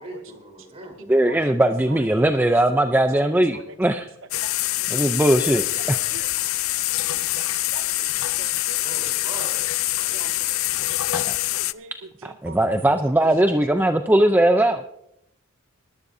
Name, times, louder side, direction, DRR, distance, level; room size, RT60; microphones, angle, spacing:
voice 1, 0.0-1.2 8.8-9.7 10.0-11.1, right 1 dB, 30° right, 2 dB, 3.8 m, -41 dB
voice 2, 1.1-4.1 4.9-6.0 11.1-11.4 12.2-14.8, right 1 dB, 10° right, 7 dB, 0.5 m, -19 dB
voice 3, 1.9-2.2 3.2-3.6 4.4-4.5 5.8-5.9 6.1-6.3 7.4-8.1 8.4-8.8 10.0-10.3 11.5-11.9 12.2-12.6, right 5 dB, 65° right, 10 dB, 0.6 m, -41 dB
sound 1, 4.3-11.7, left 17 dB, 70° left, 0.4 m, -25 dB
19.5 x 12.0 x 2.7 m, 0.77 s
head